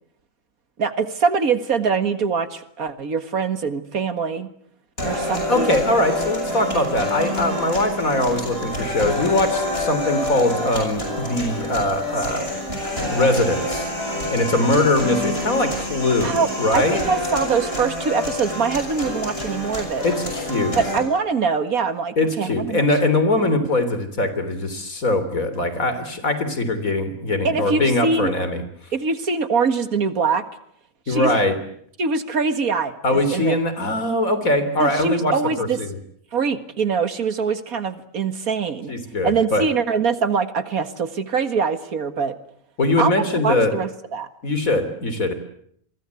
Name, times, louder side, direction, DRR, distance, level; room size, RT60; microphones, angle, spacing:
voice 1, 0.8-4.5 5.0-5.8 16.2-20.0 20.7-22.8 27.4-28.3 28.9-30.4 31.1-31.4 32.0-33.6 34.8-35.8 36.3-38.9 39.2-42.3 43.0-43.1 43.4-44.3, right 5 dB, 80° right, 11 dB, 2.2 m, -23 dB
sound 1, 5.0-21.0, left 1 dB, 40° left, 8.3 m, -27 dB
voice 2, 5.5-12.5 13.1-13.9 14.3-17.0 20.0-20.8 22.2-28.6 31.1-31.6 33.0-35.9 38.9-39.6 42.8-43.7 44.4-45.3, left 2 dB, 70° left, 11 dB, 3.9 m, -21 dB
28.0 x 23.0 x 8.3 m, 0.68 s
omnidirectional pair, 1.5 m